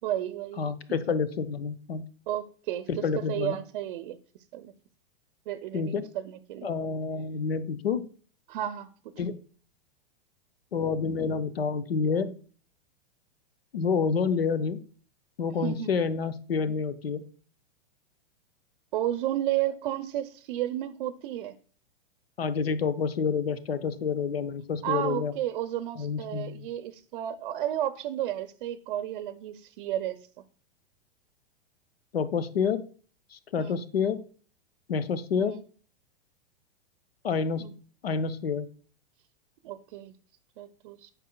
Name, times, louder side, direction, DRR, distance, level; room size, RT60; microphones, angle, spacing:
voice 1, 0.0-1.0 2.3-4.2 4.5-4.7 5.5-6.7 8.5-9.1 15.6-15.9 18.9-21.6 24.8-30.3 33.6-33.8 35.4-35.6 37.6-37.7 39.6-40.1 40.6-41.1, right 12 dB, 55° right, 0.6 m, -32 dB
voice 2, 0.6-2.0 2.9-3.6 5.7-6.1 6.6-8.1 9.2-9.4 10.7-12.3 13.7-14.8 15.4-17.2 22.4-25.3 26.0-26.7 32.1-32.8 33.3-34.2 34.9-35.6 37.2-37.7 38.0-38.6, left 5 dB, 85° left, 0.7 m, -28 dB
9.1 x 5.7 x 2.2 m
hypercardioid pair, 105°, 29 cm